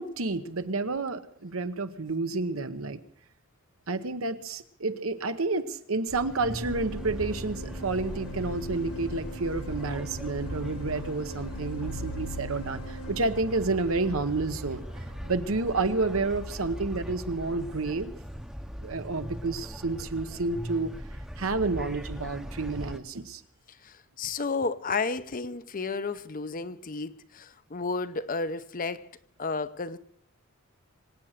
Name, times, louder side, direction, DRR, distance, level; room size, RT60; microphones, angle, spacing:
voice 1, 0.0-3.0 3.9-14.8 15.2-18.1 18.8-20.9 21.4-23.4, right 3 dB, 70° right, 1.1 m, -30 dB
sound 1, 6.1-23.0, equal, 5° right, 0.8 m, -40 dB
sound 2, 6.5-16.3, equal, 80° left, 1.1 m, -41 dB
voice 2, 23.8-29.1 29.4-30.0, left 4 dB, 40° left, 0.7 m, -32 dB
25.0 x 8.9 x 6.6 m
head